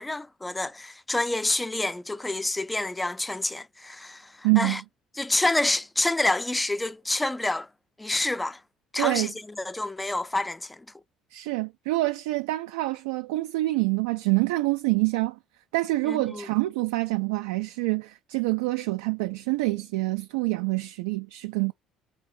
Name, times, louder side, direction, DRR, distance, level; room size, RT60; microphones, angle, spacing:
voice 1, 0.0-4.8 5.2-7.7 8.0-8.6 8.9-9.3 9.6-10.9 16.1-16.5, left 2 dB, 15° left, 0.4 m, -28 dB
voice 2, 4.4-4.8 9.0-9.3 11.3-15.4 15.7-21.7, right 21 dB, 85° right, 0.3 m, -26 dB
3.4 x 2.8 x 4.1 m
supercardioid pair, 70°, 0 cm